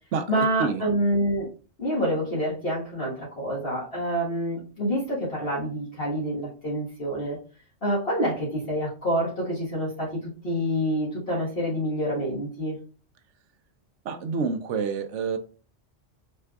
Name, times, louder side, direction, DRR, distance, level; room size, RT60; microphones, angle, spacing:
voice 1, 0.3-1.5 1.8-7.4 7.8-12.8, equal, 50° left, -6 dB, 1.7 m, -27 dB
voice 2, 14.0-15.4, right 5 dB, 75° right, 8 dB, 1.0 m, -27 dB
5.5 x 3.4 x 2.4 m, 0.36 s
omnidirectional pair, 1.3 m